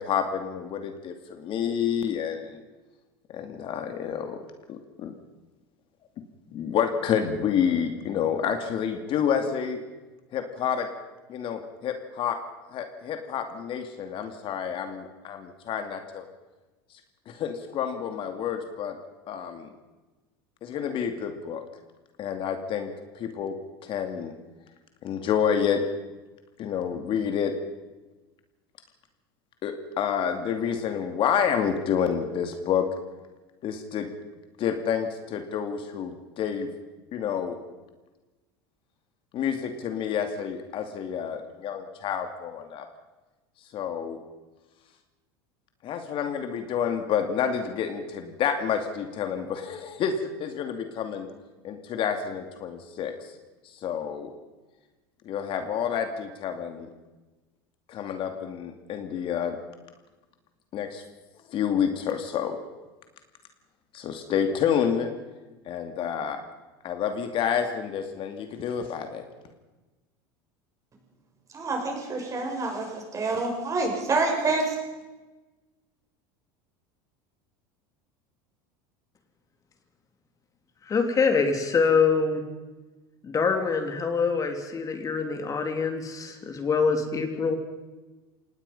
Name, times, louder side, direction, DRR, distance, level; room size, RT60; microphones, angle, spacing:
voice 1, 0.0-2.6 3.3-4.4 4.7-5.1 6.5-9.8 10.3-10.9 11.3-12.4 12.7-16.2 17.3-19.0 19.3-19.7 20.6-21.6 22.2-23.5 23.8-24.3 25.0-25.8 26.6-27.5 29.6-32.9 33.6-34.1 34.6-36.7 37.1-37.6 39.3-42.8 43.7-44.2 45.8-51.3 51.6-53.1 53.8-54.3 55.3-56.9 57.9-59.5 60.7-61.0 61.5-62.6 63.9-65.1 65.7-66.4 66.8-69.2, left 8 dB, 45° left, 6 dB, 2.5 m, -29 dB
voice 2, 71.5-74.8, right 3 dB, 25° right, 1 dB, 6.9 m, -27 dB
voice 3, 80.9-82.4 83.2-87.6, left 5 dB, 25° left, 5 dB, 3.4 m, -25 dB
25.5 x 19.0 x 5.6 m, 1.2 s
supercardioid pair, 115°, 12 cm